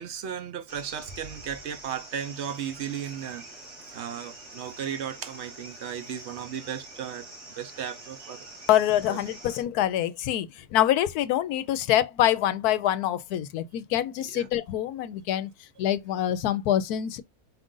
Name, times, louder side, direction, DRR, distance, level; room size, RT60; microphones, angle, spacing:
voice 1, 0.0-7.3 7.6-8.5 9.1-9.2 14.2-14.5, right 8 dB, 60° right, 0.8 m, -35 dB
sound 1, 0.7-9.6, right 1 dB, 80° right, 2.5 m, -45 dB
voice 2, 8.7-15.5 15.8-17.2, left 12 dB, 80° left, 1.1 m, -25 dB
5.2 x 2.5 x 3.7 m
omnidirectional pair, 1.7 m